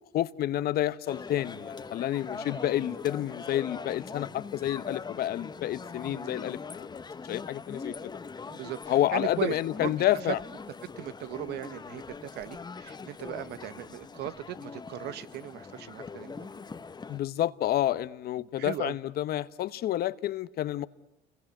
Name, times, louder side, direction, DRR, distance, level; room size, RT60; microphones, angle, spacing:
voice 1, 0.1-7.0 7.2-8.1 8.9-10.4 17.1-20.9, left 13 dB, 65° left, 15 dB, 1.0 m, -29 dB
sound 1, 1.1-17.2, left 5 dB, 25° left, 1.1 m, -42 dB
voice 2, 2.4-2.9 6.0-6.5 8.5-8.8 9.1-9.5 9.8-9.9 11.0-16.5 18.6-18.9, right 12 dB, 75° right, 14 dB, 1.3 m, -38 dB
29.0 x 22.0 x 9.2 m, 0.87 s
cardioid pair, 110°, 17 cm